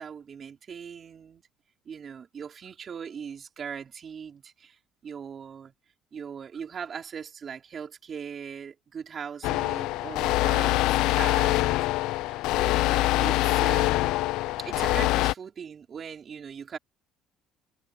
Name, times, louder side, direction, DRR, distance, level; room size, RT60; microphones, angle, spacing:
voice 1, 0.0-1.4 1.8-5.7 6.1-14.1 14.6-16.8, right 7 dB, 30° right, 4.9 m, -40 dB
sound 1, 9.4-15.3, left 18 dB, 70° left, 0.5 m, -24 dB
open air
cardioid pair, 155°, 0 cm